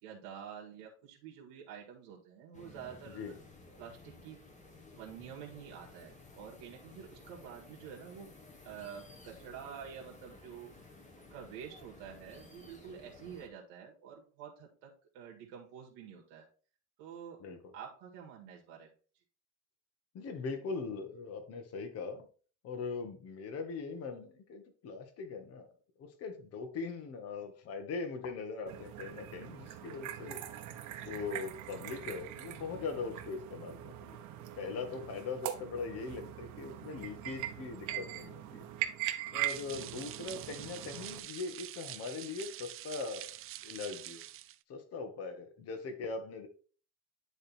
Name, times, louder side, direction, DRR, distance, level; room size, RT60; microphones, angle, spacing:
voice 1, 0.0-3.3 3.8-4.4 5.0-8.3 8.6-10.9 11.3-16.5 17.0-17.4 17.7-18.9 40.1-40.4, right 8 dB, 85° right, -1 dB, 1.8 m, -48 dB
sound 1, 2.5-13.5, left 3 dB, 20° left, 1.6 m, -55 dB
voice 2, 17.4-17.7 20.1-22.3 22.6-25.7 26.0-30.4 31.0-34.2 34.6-38.7 39.3-43.3 43.6-44.2 44.7-46.5, left 4 dB, 50° left, 5 dB, 1.4 m, -41 dB
sound 2, 28.7-41.2, right 12 dB, 65° right, 1.1 m, -41 dB
sound 3, 39.5-44.6, right 14 dB, 45° right, 0.5 m, -46 dB
9.9 x 3.4 x 4.5 m, 0.40 s
cardioid pair, 135°, 32 cm